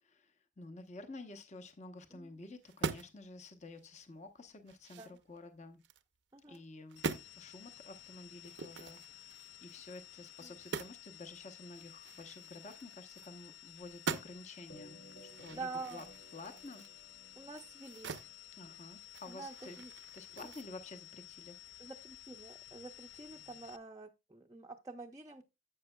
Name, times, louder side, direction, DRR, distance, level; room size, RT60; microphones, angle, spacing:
voice 1, 0.0-5.8 6.5-7.0 7.3-16.0 16.3-16.8 18.6-19.8 20.1-21.9, left 2 dB, 35° left, 0.9 m, -51 dB
sound 1, 2.6-3.3 3.7-3.8 4.3-6.0 6.4-6.6 6.9-7.3 8.4-11.1 11.3-11.4 11.7-13.6 13.8-14.6 15.1-18.3 18.7-20.6, right 5 dB, 65° right, 0.6 m, -44 dB
sound 2, 7.0-23.8, left 12 dB, 70° left, 0.7 m, -54 dB
sound 3, 14.7-19.3, right 1 dB, 85° left, 3.4 m, -59 dB
voice 2, 15.5-16.0 17.4-18.2 19.3-19.9 20.4-20.5 21.8-25.5, right 3 dB, 20° right, 0.5 m, -47 dB
11.0 x 8.0 x 2.2 m
head